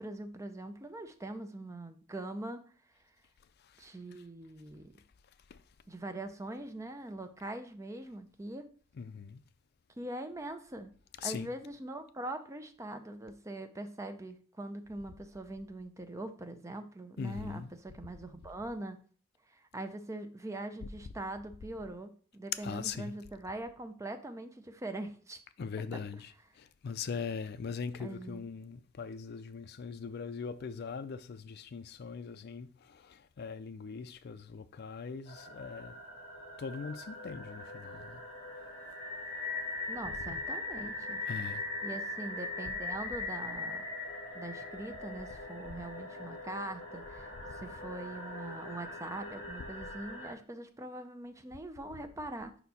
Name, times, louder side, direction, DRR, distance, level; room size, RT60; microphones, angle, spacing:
voice 1, 0.0-2.6 3.8-4.9 5.9-8.7 10.0-10.9 11.2-19.0 19.7-25.4 28.0-28.5 39.9-41.2 41.8-43.8 44.3-52.6, right 1 dB, 15° right, 0.5 m, -42 dB
voice 2, 8.9-9.4 11.2-11.5 17.2-17.7 22.6-23.1 25.6-36.0 36.6-38.2 40.2-40.3 41.2-41.6, left 5 dB, 55° left, 0.4 m, -41 dB
sound 1, 35.3-50.3, left 2 dB, 25° left, 2.4 m, -41 dB
5.2 x 4.4 x 4.1 m
head